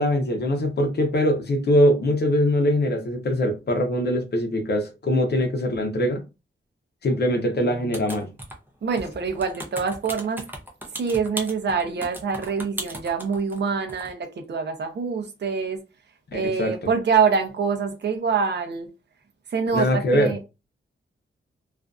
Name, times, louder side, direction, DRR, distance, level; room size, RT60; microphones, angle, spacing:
voice 1, 0.0-6.2 7.0-8.3 16.3-16.7 19.7-20.3, equal, 50° left, 0.7 m, -22 dB
sound 1, 7.9-8.7 9.0-13.6 13.9-14.1, right 1 dB, 10° right, 0.5 m, -36 dB
voice 2, 8.8-10.4 10.9-15.8 16.3-18.9 19.5-20.4, right 5 dB, 55° right, 0.6 m, -25 dB
2.5 x 2.4 x 2.2 m
wide cardioid pair, 175°, 21 cm